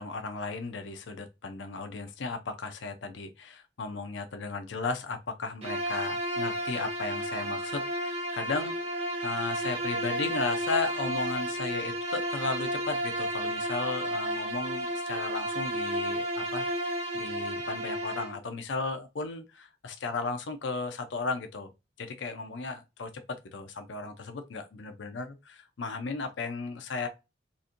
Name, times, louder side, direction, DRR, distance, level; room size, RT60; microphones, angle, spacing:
voice 1, 0.0-8.9 9.2-21.7 22.0-27.1, left 3 dB, 85° left, 0.6 m, -35 dB
Bowed string instrument, 5.6-18.4, right 1 dB, 35° right, 1.0 m, -32 dB
4.0 x 2.5 x 2.5 m
head